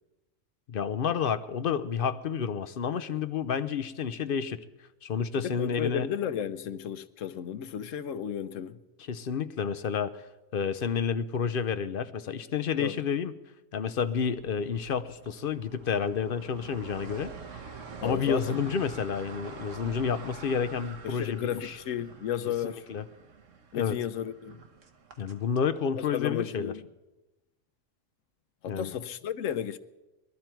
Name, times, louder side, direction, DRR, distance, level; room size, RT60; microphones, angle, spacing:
voice 1, 0.7-4.6 5.0-6.1 9.1-10.2 10.5-13.3 13.7-17.6 18.0-21.8 22.6-23.0 23.7-24.0 25.2-26.7 28.7-28.9, left 6 dB, 55° left, 0.8 m, -30 dB
voice 2, 5.3-8.8 12.8-13.0 18.0-18.8 21.0-22.8 23.7-24.6 26.1-26.8 28.6-29.8, left 9 dB, 90° left, 1.1 m, -33 dB
sound 1, 14.1-25.6, right 5 dB, 80° right, 1.6 m, -46 dB
22.0 x 12.5 x 4.5 m
omnidirectional pair, 1.3 m